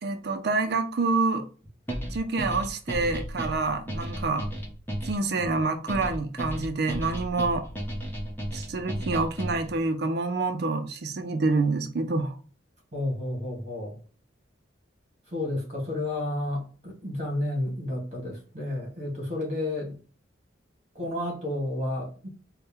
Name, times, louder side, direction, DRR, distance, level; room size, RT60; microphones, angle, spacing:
voice 1, 0.0-1.5 2.1-4.5 5.0-7.6 8.5-12.3, right 3 dB, 55° right, 0.4 m, -27 dB
sound 1, 1.9-9.8, equal, 10° left, 0.8 m, -34 dB
voice 2, 12.9-14.0 15.3-20.0 20.9-22.3, left 1 dB, 40° right, 1.9 m, -31 dB
4.1 x 2.1 x 3.5 m
head